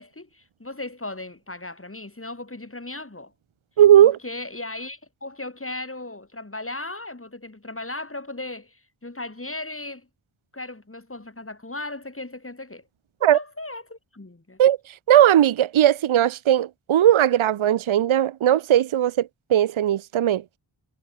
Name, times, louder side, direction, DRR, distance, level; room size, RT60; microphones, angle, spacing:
voice 1, 0.0-3.3 4.0-10.1 10.5-12.8 13.3-14.6, left 2 dB, 25° left, 1.9 m, -36 dB
voice 2, 3.8-4.2 13.2-13.4 14.6-14.8 15.1-20.4, right 11 dB, 75° right, 0.6 m, -18 dB
wide cardioid pair, 50°, 49 cm